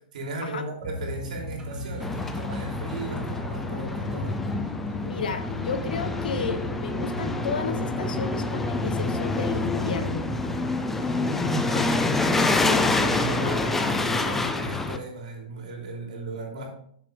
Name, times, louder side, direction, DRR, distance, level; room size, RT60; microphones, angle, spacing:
voice 1, 0.1-4.4 12.6-16.7, right 2 dB, 65° right, 0 dB, 3.0 m, -36 dB
sound 1, 0.8-10.6, equal, 15° right, 1.2 m, -37 dB
sound 2, 2.0-15.0, left 2 dB, 5° left, 0.4 m, -27 dB
voice 2, 5.0-10.3 12.6-12.8, left 5 dB, 80° left, 9 dB, 1.0 m, -33 dB
8.3 x 6.8 x 3.3 m, 0.67 s
hypercardioid pair, 165°, 5 cm